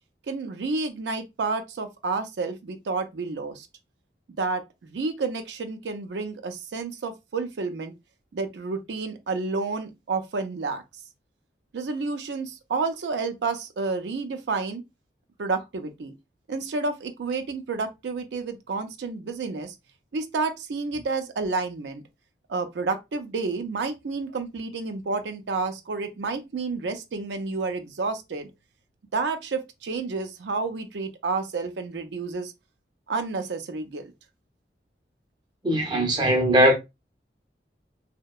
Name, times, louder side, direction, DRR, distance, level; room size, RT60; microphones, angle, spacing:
voice 1, 0.3-3.7 4.4-7.9 8.3-10.8 11.7-14.8 15.4-16.1 16.5-19.7 20.1-22.0 22.5-28.5 29.1-32.5 33.1-34.1, right 4 dB, 80° right, 0.4 m, -30 dB
voice 2, 35.6-36.8, right 1 dB, 25° right, 0.5 m, -20 dB
2.7 x 2.1 x 2.3 m
head